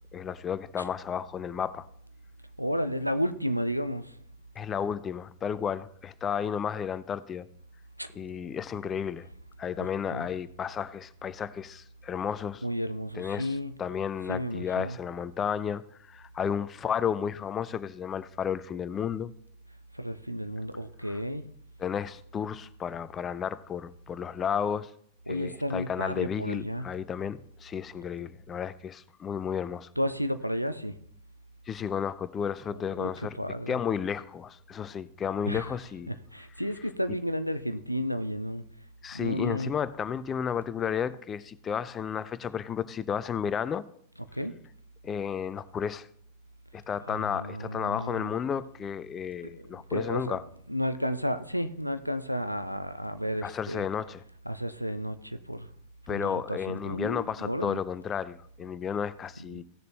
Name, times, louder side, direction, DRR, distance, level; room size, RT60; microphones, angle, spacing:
voice 1, 0.1-1.9 4.6-7.5 8.1-9.3 9.6-12.6 13.1-19.3 21.1-21.2 21.8-24.9 25.3-29.9 31.7-33.4 33.7-36.1 39.0-43.8 45.0-46.1 46.7-50.4 53.4-54.2 56.1-59.6, left 8 dB, 25° left, 0.5 m, -32 dB
voice 2, 2.6-4.2 8.0-8.1 9.8-10.3 12.6-13.7 14.3-15.0 19.9-21.5 25.3-26.9 30.0-31.0 32.9-33.1 33.4-33.7 35.5-35.7 36.1-38.6 39.1-39.8 44.3-44.6 47.1-48.3 49.4-49.6 49.9-50.4 50.7-53.9 54.5-55.7 56.1-57.8 59.5-59.6, equal, 90° right, 0.5 m, -32 dB
16.0 x 6.6 x 3.3 m
figure-of-eight pair, 90°, 0 cm